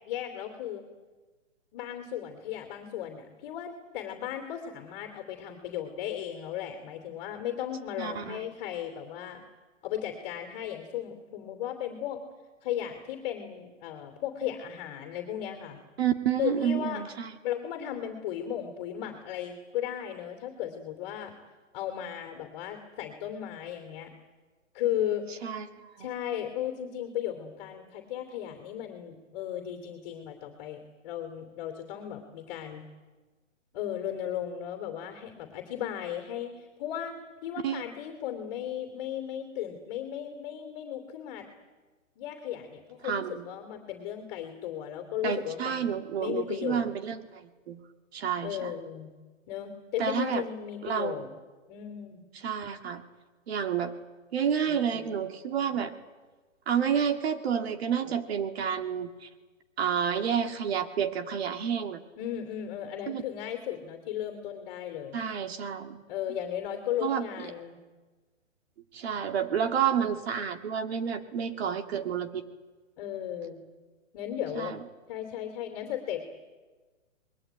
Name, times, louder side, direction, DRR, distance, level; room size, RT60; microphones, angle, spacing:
voice 1, 0.1-0.8 1.7-9.4 9.8-12.2 12.6-15.8 16.4-17.0 17.4-21.3 21.7-24.1 24.7-25.3 26.0-32.8 33.7-37.2 37.4-41.4 42.2-45.9 46.2-46.9 48.4-49.1 49.5-51.3 51.7-52.2 62.2-65.2 66.1-67.8 73.0-73.6 74.1-74.7 75.1-76.3, left 10 dB, 30° left, 5 dB, 2.9 m, -35 dB
voice 2, 8.0-8.4 16.0-17.4 25.4-26.1 37.6-37.8 43.0-43.5 45.2-47.8 48.1-48.7 50.0-50.4 50.8-51.3 52.4-53.0 53.5-53.9 54.3-55.9 56.7-59.3 59.8-62.0 63.1-63.2 65.1-66.0 67.0-67.3 68.9-72.4 74.6-74.8, right 8 dB, 50° right, 6 dB, 2.2 m, -30 dB
24.5 x 21.0 x 9.1 m, 1.3 s
hypercardioid pair, 150°, 39 cm